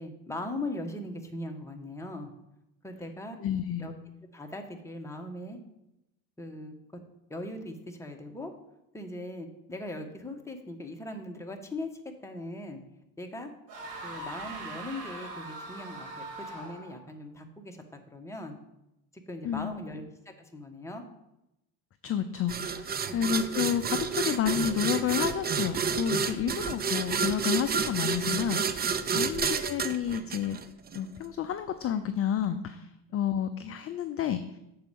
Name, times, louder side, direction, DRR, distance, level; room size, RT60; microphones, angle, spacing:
voice 1, 0.0-2.3 2.8-3.4 3.8-3.9 4.3-5.6 6.4-6.7 7.3-8.5 8.9-11.9 12.2-12.8 13.2-13.5 14.0-18.6 19.3-21.0 23.0-23.5 26.3-26.5, left 1 dB, 5° left, 2 dB, 1.3 m, -40 dB
voice 2, 3.4-3.9 19.4-19.9 22.0-30.6 30.9-34.4, left 9 dB, 30° left, 9 dB, 0.5 m, -30 dB
sound 1, 13.7-17.0, right 2 dB, 60° right, 2.9 m, -41 dB
sound 2, 22.5-31.0, right 6 dB, 20° right, 0.5 m, -30 dB
6.8 x 4.7 x 6.8 m, 0.87 s
hypercardioid pair, 70°, 49 cm